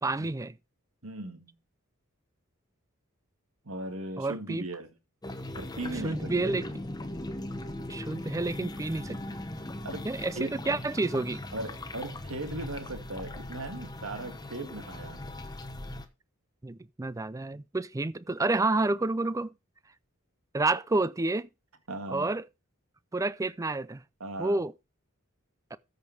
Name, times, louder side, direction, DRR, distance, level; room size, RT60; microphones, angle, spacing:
voice 1, 0.0-0.6 4.2-4.7 6.0-6.6 7.9-9.2 10.0-11.4 16.6-19.5 20.5-21.5 22.1-22.4 23.1-24.0 24.4-24.7 25.7-25.8, right 2 dB, 15° right, 0.4 m, -29 dB
voice 2, 1.0-1.6 3.6-4.9 5.5-6.5 9.8-10.1 10.4-10.6 11.5-15.4 21.9-22.3 24.2-24.6, right 2 dB, 80° right, 2.0 m, -38 dB
sound 1, 5.2-16.1, left 1 dB, 20° left, 1.0 m, -39 dB
13.5 x 5.3 x 4.5 m
head